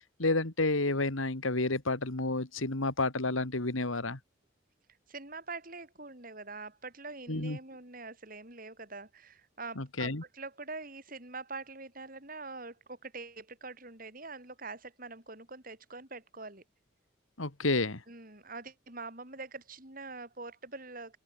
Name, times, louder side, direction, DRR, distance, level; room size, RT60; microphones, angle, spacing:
voice 1, 0.2-4.2 7.3-7.6 9.8-10.2 17.4-18.0, left 2 dB, 85° left, 2.4 m, -30 dB
voice 2, 5.1-16.6 18.1-21.2, right 3 dB, 45° right, 5.4 m, -44 dB
open air
head